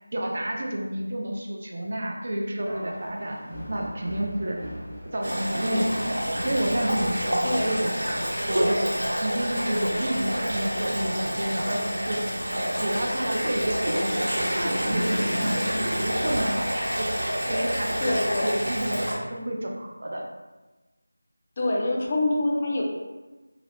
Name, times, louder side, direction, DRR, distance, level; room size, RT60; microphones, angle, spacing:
voice 1, 0.1-4.6 5.1-8.1 8.5-8.9 9.2-12.3 12.8-16.7 16.9-17.2 17.5-20.3, right 1 dB, 45° right, 0 dB, 0.4 m, -30 dB
sound 1, 2.6-8.4, equal, 10° right, 0.9 m, -39 dB
sound 2, 5.2-19.1, equal, 85° right, 0.9 m, -28 dB
voice 2, 18.0-18.5 21.6-22.8, left 2 dB, 25° left, -3 dB, 0.5 m, -25 dB
2.9 x 2.4 x 3.2 m, 1.1 s
figure-of-eight pair, 170°, 0 cm